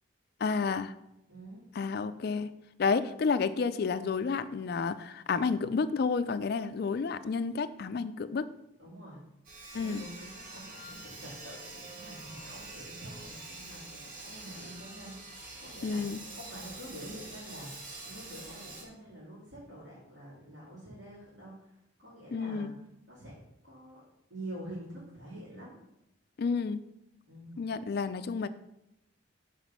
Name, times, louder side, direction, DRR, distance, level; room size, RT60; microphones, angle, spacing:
voice 1, 0.4-0.9 1.8-2.5 2.8-8.5 9.7-10.0 15.8-16.2 22.3-22.8 26.4-26.8 27.6-28.5, left 5 dB, 55° left, 12 dB, 0.4 m, -30 dB
voice 2, 1.3-1.6 8.8-9.2 9.7-21.7 22.0-22.7 23.1-23.4 23.6-24.0 24.3-25.7 27.2-27.6, right 1 dB, 70° right, -11 dB, 3.1 m, -47 dB
Sawing, 9.4-18.8, right 2 dB, 45° right, 1.7 m, -46 dB
6.0 x 5.0 x 5.4 m, 0.86 s
head